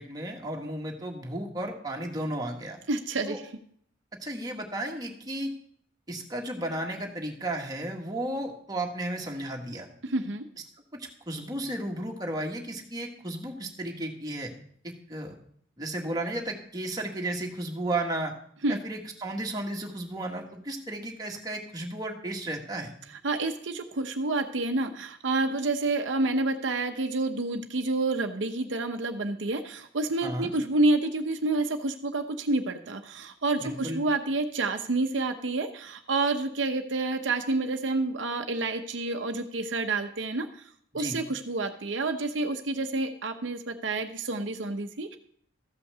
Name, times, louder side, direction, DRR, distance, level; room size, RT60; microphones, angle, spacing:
voice 1, 0.0-2.8 3.3-3.4 4.2-5.5 6.1-9.9 10.9-14.5 14.8-15.3 15.8-18.3 18.7-22.9 30.2-30.5 33.6-34.0 40.9-41.2, right 1 dB, 20° right, 1 dB, 1.6 m, -34 dB
voice 2, 2.9-3.4 10.0-10.4 18.6-18.8 23.1-45.2, right 2 dB, 75° right, 6 dB, 0.8 m, -29 dB
14.0 x 5.6 x 6.7 m, 0.64 s
head